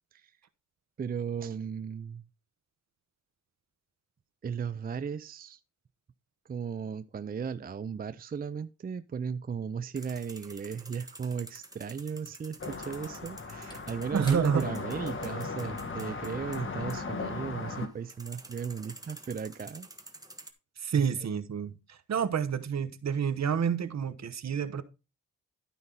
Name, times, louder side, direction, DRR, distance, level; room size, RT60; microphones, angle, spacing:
voice 1, 1.0-2.2 4.4-5.6 6.5-19.9 20.9-21.0, right 6 dB, 30° right, 0.4 m, -36 dB
sound 1, 10.0-20.5, right 2 dB, 10° right, 1.4 m, -50 dB
sound 2, 12.6-17.9, left 4 dB, 40° left, 1.5 m, -37 dB
Slam / Wood, 13.7-17.5 17.8-18.0, left 1 dB, 15° left, 2.7 m, -52 dB
voice 2, 14.1-14.7 20.8-24.8, right 7 dB, 60° right, 1.0 m, -29 dB
12.0 x 5.4 x 3.9 m
cardioid pair, 90°, 32 cm